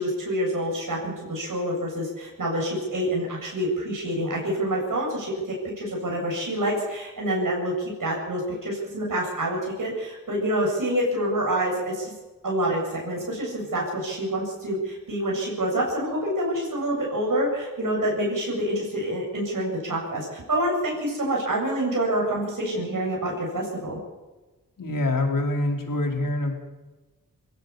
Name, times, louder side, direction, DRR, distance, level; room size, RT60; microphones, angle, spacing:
voice 1, 0.0-12.1 12.4-24.0, right 1 dB, 65° right, -1 dB, 7.8 m, -27 dB
voice 2, 24.8-26.6, left 2 dB, 65° left, 2 dB, 4.5 m, -25 dB
23.5 x 17.0 x 7.1 m, 1.2 s
cardioid pair, 60°, 35 cm